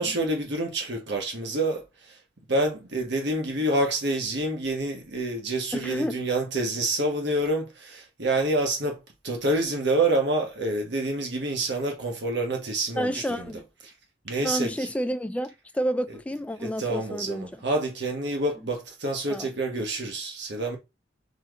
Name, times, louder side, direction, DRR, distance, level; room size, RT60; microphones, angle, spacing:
voice 1, 0.0-1.8 2.5-9.0 9.2-13.5 14.2-14.7 16.6-20.8, right 2 dB, 65° right, 1.3 m, -27 dB
voice 2, 5.7-6.2 13.0-13.6 14.4-17.6 19.3-19.5, equal, 5° left, 0.4 m, -30 dB
4.3 x 3.2 x 3.7 m
head